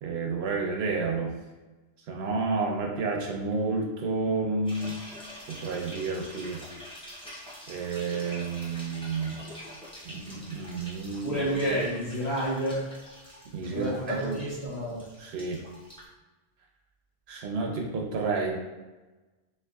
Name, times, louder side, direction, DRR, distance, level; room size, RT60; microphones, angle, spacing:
voice 1, 0.0-1.3 2.1-5.0 5.5-6.6 7.7-9.4 10.0-11.3 13.5-14.4 15.2-15.6 17.3-18.5, right 4 dB, 75° right, 0 dB, 0.8 m, -30 dB
sound 1, 4.6-16.0, equal, 5° left, 0.6 m, -46 dB
voice 2, 11.2-12.8 13.7-15.0, equal, 40° left, -8 dB, 1.1 m, -29 dB
3.2 x 2.8 x 2.3 m, 1.2 s
omnidirectional pair, 1.1 m